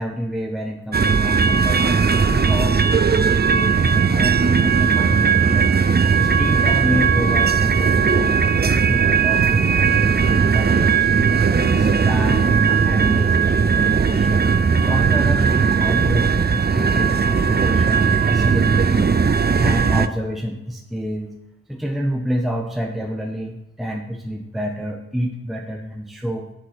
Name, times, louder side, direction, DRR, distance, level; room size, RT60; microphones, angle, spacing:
voice 1, 0.0-14.6 14.9-19.2 19.6-21.3 21.7-26.5, equal, ahead, 1 dB, 1.0 m, -28 dB
sound 1, 0.9-20.1, right 6 dB, 30° right, 0.5 m, -17 dB
8.5 x 7.6 x 6.0 m, 0.96 s
wide cardioid pair, 90°, 35 cm